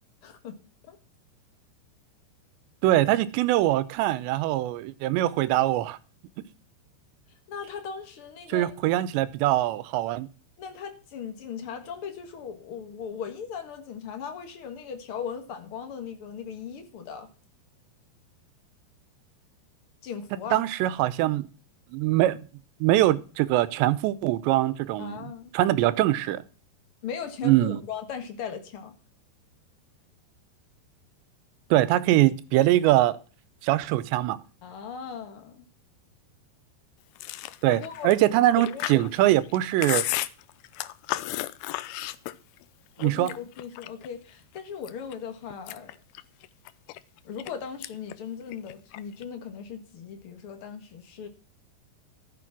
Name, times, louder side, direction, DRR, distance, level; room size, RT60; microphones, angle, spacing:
voice 1, 0.2-0.6 0.8-1.0 7.5-8.7 10.6-17.3 20.0-20.6 25.0-25.5 27.0-28.9 34.6-35.7 37.7-38.3 38.5-39.1 43.0-45.9 47.2-51.3, left 7 dB, 65° left, 1.3 m, -38 dB
voice 2, 2.8-6.0 8.5-10.3 20.5-21.5 21.9-22.5 22.8-26.4 27.4-27.8 31.7-33.2 33.6-34.4 37.6-40.0 43.0-43.3, right 15 dB, 80° right, 2.9 m, -23 dB
Chewing mastication, 37.2-42.6 43.0-44.1 44.6-45.1 45.5-47.5 47.8-48.1 48.4-49.2, left 16 dB, 85° left, 2.2 m, -33 dB
14.0 x 7.0 x 5.9 m
omnidirectional pair, 5.2 m